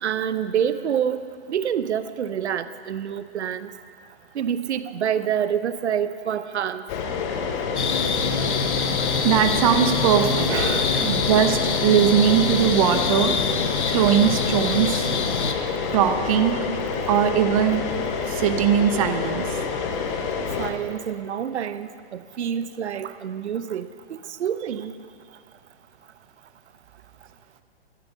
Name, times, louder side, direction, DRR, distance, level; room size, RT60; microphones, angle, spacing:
voice 1, 0.0-3.7 4.3-6.8 10.5-11.1 20.6-23.9 24.1-24.9, right 8 dB, 80° right, 13 dB, 0.8 m, -27 dB
sound 1, 6.9-20.7, left 5 dB, 25° left, 1.1 m, -28 dB
sound 2, 7.8-15.5, left 5 dB, 90° left, 1.2 m, -25 dB
voice 2, 9.2-10.5 11.0-13.3 13.9-15.1 15.9-16.6 17.1-17.9 18.3-19.6, right 10 dB, 30° right, 8 dB, 0.7 m, -20 dB
11.5 x 10.0 x 8.2 m, 2.4 s
hypercardioid pair, 150°, 33 cm